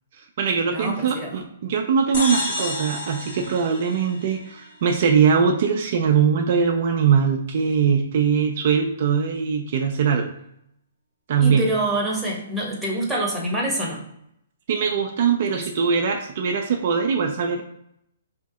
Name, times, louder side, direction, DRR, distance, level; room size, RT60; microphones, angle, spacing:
voice 1, 0.1-10.3 11.3-11.7 14.7-17.6, right 6 dB, 55° right, 3 dB, 0.4 m, -21 dB
voice 2, 0.7-1.3 2.1-2.2 2.6-2.7 11.4-14.0 15.5-15.6, right 1 dB, 5° right, -4 dB, 0.9 m, -26 dB
sound 1, 2.1-4.7, left 1 dB, 55° left, 1.3 m, -30 dB
2.8 x 2.7 x 3.5 m, 0.74 s
hypercardioid pair, 130°, 0 cm